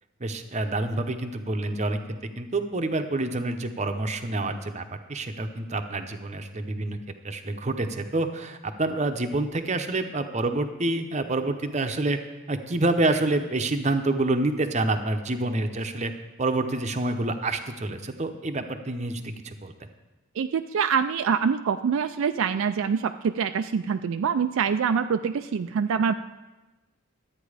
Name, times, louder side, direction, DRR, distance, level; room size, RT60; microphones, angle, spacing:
voice 1, 0.2-2.0 2.4-7.0 7.2-12.2 12.5-16.1 16.4-19.9, right 2 dB, 30° right, 7 dB, 0.7 m, -27 dB
voice 2, 20.4-26.1, right 6 dB, 65° right, 8 dB, 0.3 m, -25 dB
12.5 x 9.0 x 4.9 m, 1.1 s
head